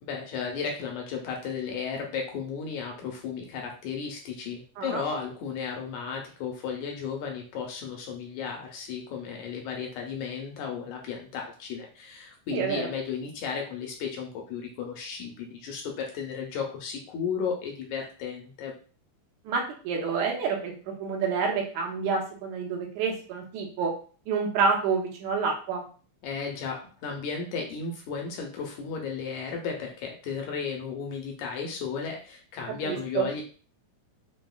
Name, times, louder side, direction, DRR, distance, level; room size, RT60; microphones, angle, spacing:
voice 1, 0.0-18.7 26.2-33.4, left 6 dB, 80° left, 1 dB, 1.7 m, -34 dB
voice 2, 12.5-12.9 19.5-23.9 24.3-25.8 32.8-33.2, right 5 dB, 75° right, 0 dB, 2.0 m, -28 dB
5.4 x 2.1 x 2.2 m, 0.40 s
omnidirectional pair, 3.7 m